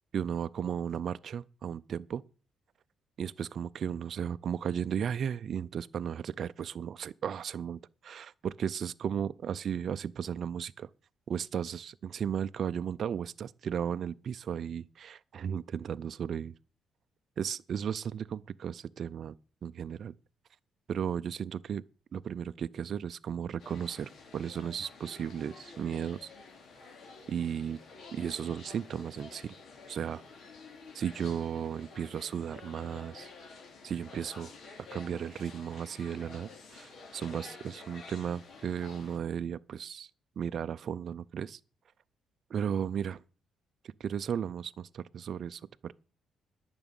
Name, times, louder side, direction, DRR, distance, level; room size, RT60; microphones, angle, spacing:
voice 1, 0.1-2.2 3.2-10.9 11.3-16.5 17.4-19.4 19.6-20.1 20.9-21.8 22.1-26.3 27.3-27.8 28.1-29.5 29.9-30.2 30.9-33.3 33.8-34.5 34.9-40.1 40.4-41.6 42.5-43.2 43.8-45.9, right 8 dB, 60° right, 0.5 m, -35 dB
sound 1, 23.6-39.2, left 4 dB, 65° left, 2.8 m, -50 dB
11.0 x 6.1 x 8.9 m
cardioid pair, 90°, 0 cm